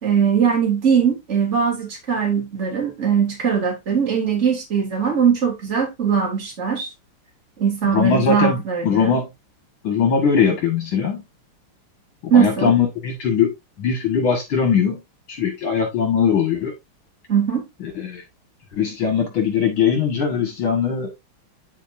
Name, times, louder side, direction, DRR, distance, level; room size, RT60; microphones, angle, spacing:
voice 1, 0.0-6.9 7.6-9.2 12.3-12.7 17.3-17.6, right 7 dB, 30° right, 3.2 m, -20 dB
voice 2, 7.9-9.3 9.8-11.2 12.2-15.0 15.3-16.7 17.8-18.2 18.7-21.1, left 6 dB, 65° left, 2.5 m, -20 dB
9.1 x 5.8 x 2.7 m
omnidirectional pair, 2.4 m